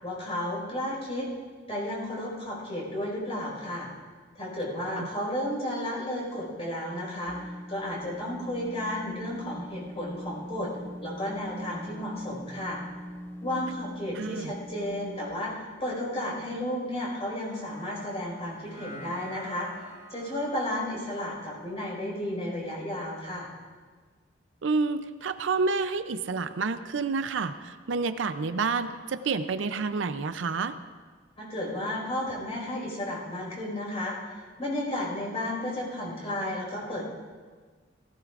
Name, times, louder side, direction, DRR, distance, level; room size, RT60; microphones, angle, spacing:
voice 1, 0.0-1.3 1.7-3.9 4.3-7.4 7.7-10.7 11.0-12.8 13.4-19.7 20.1-23.5 31.4-34.1 34.6-37.0, left 1 dB, 35° left, -3 dB, 4.8 m, -33 dB
sound 1, 7.2-15.3, equal, 10° left, 0.7 m, -42 dB
voice 2, 14.2-14.5 24.6-30.8, right 4 dB, 70° right, 11 dB, 0.5 m, -29 dB
sound 2, 16.9-23.3, right 1 dB, 85° left, 2.0 m, -50 dB
17.5 x 16.0 x 2.5 m, 1.5 s
head